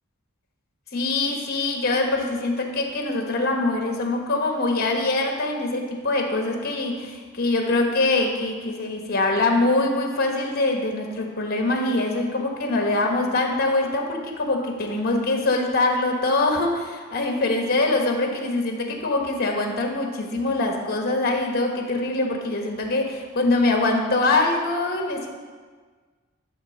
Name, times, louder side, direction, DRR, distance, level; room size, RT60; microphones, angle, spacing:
voice 1, 0.9-25.3, left 2 dB, 50° left, 2 dB, 1.3 m, -23 dB
11.5 x 4.1 x 6.4 m, 1.5 s
head